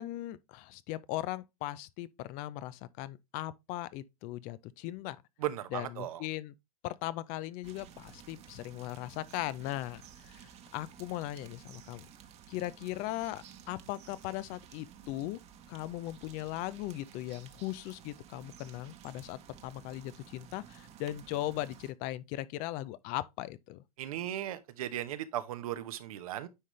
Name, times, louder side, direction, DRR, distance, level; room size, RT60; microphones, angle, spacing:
voice 1, 0.0-5.2 5.7-6.5 6.8-12.1 12.5-15.4 15.7-23.8, left 15 dB, 45° left, 0.6 m, -38 dB
voice 2, 5.4-6.2 24.0-26.5, right 12 dB, 70° right, 1.0 m, -37 dB
sound 1, 7.6-21.9, right 8 dB, 35° right, 1.2 m, -54 dB
9.7 x 3.8 x 3.2 m
hypercardioid pair, 110°, 19 cm